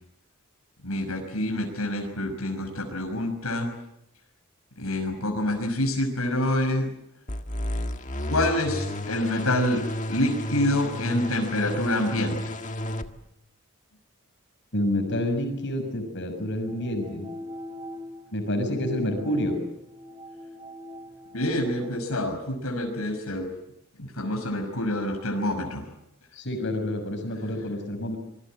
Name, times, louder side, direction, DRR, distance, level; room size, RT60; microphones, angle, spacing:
voice 1, 0.8-3.7 4.8-6.9 8.3-12.5 21.3-23.5 24.0-25.8, left 1 dB, 85° left, 3 dB, 5.9 m, -27 dB
sound 1, 7.3-13.1, left 1 dB, 35° left, 1.6 m, -32 dB
voice 2, 14.7-17.3 18.3-19.6 26.3-28.2, left 1 dB, 55° left, 5 dB, 6.3 m, -28 dB
sound 2, 16.7-22.0, left 1 dB, 25° right, 3.1 m, -41 dB
26.0 x 22.5 x 7.7 m, 0.82 s
head